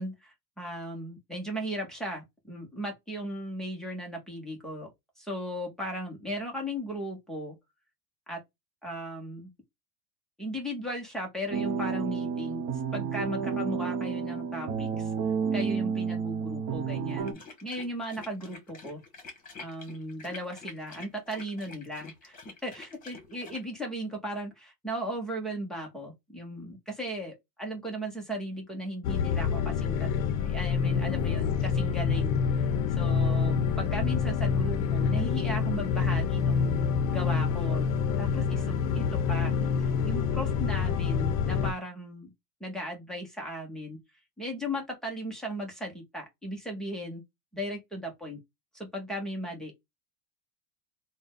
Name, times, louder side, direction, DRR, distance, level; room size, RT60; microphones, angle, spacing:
voice 1, 0.0-4.9 5.2-7.6 8.3-8.4 8.8-9.5 10.4-12.6 12.9-15.1 15.5-19.0 19.6-22.4 22.6-30.1 30.4-32.7 33.0-37.9 38.2-39.5 39.8-42.3 42.6-44.0 44.4-47.2 47.5-48.4 48.7-49.7, equal, ahead, 0.3 m, -37 dB
sound 1, 11.5-17.3, right 6 dB, 40° right, 0.8 m, -31 dB
sound 2, 17.2-23.6, left 4 dB, 15° left, 1.1 m, -47 dB
sound 3, 29.0-41.7, left 6 dB, 60° left, 0.6 m, -27 dB
3.9 x 2.0 x 3.5 m
supercardioid pair, 160°, 47 cm